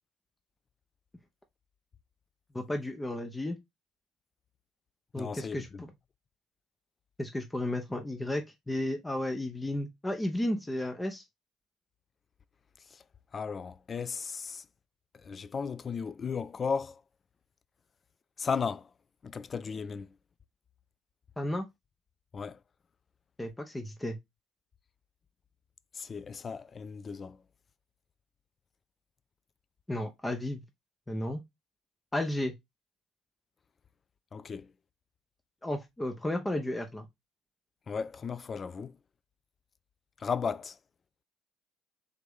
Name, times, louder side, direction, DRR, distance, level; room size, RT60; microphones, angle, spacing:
voice 1, 2.5-3.6 5.1-5.7 7.2-11.2 21.4-21.7 23.4-24.2 29.9-30.6 31.1-31.4 32.1-32.5 35.6-37.0, left 1 dB, 15° left, 0.7 m, -33 dB
voice 2, 5.2-5.8 12.9-13.0 13.3-14.6 15.2-17.0 18.4-18.9 19.2-20.1 22.3-22.6 25.9-27.4 34.3-34.7 37.9-39.0 40.2-40.8, left 6 dB, 35° left, 0.3 m, -35 dB
3.4 x 2.9 x 3.6 m
hypercardioid pair, 55°, 0 cm